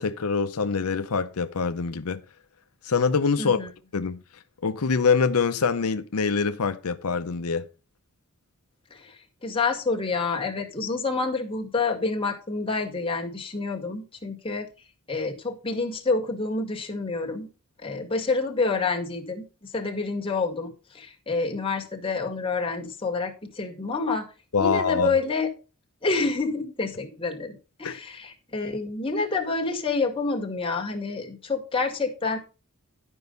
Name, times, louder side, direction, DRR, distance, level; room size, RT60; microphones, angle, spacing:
voice 1, 0.0-2.2 2.8-3.6 3.9-7.7 24.5-25.1 27.8-28.0, left 5 dB, 80° left, 0.7 m, -25 dB
voice 2, 3.4-3.7 8.9-14.7 15.1-17.5 17.8-24.3 24.6-25.5 26.0-32.4, left 3 dB, 25° left, 1.9 m, -28 dB
11.5 x 5.4 x 5.2 m
head